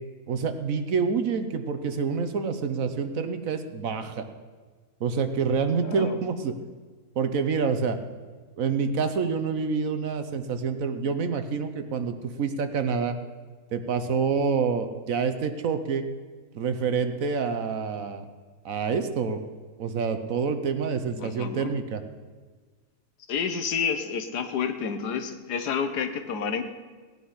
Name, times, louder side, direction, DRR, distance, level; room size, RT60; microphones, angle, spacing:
voice 1, 0.3-4.3 5.0-6.5 7.2-8.0 8.6-13.2 13.7-16.0 16.5-18.2 18.6-19.4 19.8-22.0, right 5 dB, 60° right, 9 dB, 1.2 m, -27 dB
voice 2, 5.8-6.2 21.2-21.8 23.3-26.6, left 6 dB, 85° left, 9 dB, 1.6 m, -29 dB
17.0 x 9.4 x 5.7 m, 1.5 s
omnidirectional pair, 1.7 m